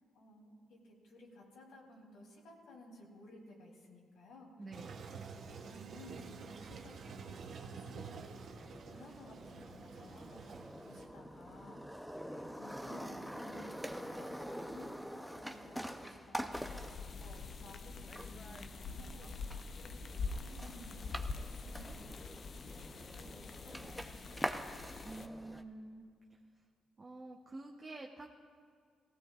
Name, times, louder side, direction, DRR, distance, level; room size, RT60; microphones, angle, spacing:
voice 1, 0.1-4.5 5.1-8.6 8.9-14.9 15.4-24.4, left 1 dB, 80° left, -3 dB, 3.4 m, -57 dB
voice 2, 4.6-5.0 25.0-26.4 27.0-28.3, right 2 dB, 25° right, 0 dB, 1.0 m, -49 dB
Toilet flush, 4.7-11.1, right 5 dB, 60° right, 0.9 m, -49 dB
sound 1, 8.6-25.6, equal, ahead, 0.7 m, -46 dB
sound 2, 16.5-25.3, left 4 dB, 50° left, 0.6 m, -45 dB
18.5 x 16.0 x 2.5 m, 2.1 s
cardioid pair, 90°, 0 cm